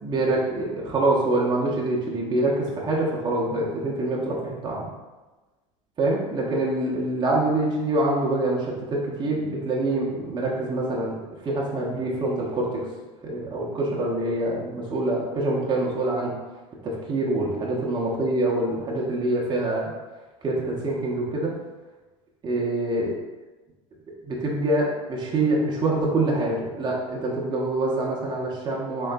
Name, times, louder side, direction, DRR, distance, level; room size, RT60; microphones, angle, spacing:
voice 1, 0.0-4.9 6.0-11.2 11.4-12.8 13.2-16.3 16.8-19.9 20.4-21.6 22.4-23.1 24.3-29.1, right 2 dB, 25° right, -4 dB, 0.7 m, -25 dB
3.7 x 3.1 x 2.3 m, 1.2 s
hypercardioid pair, 90°, 17 cm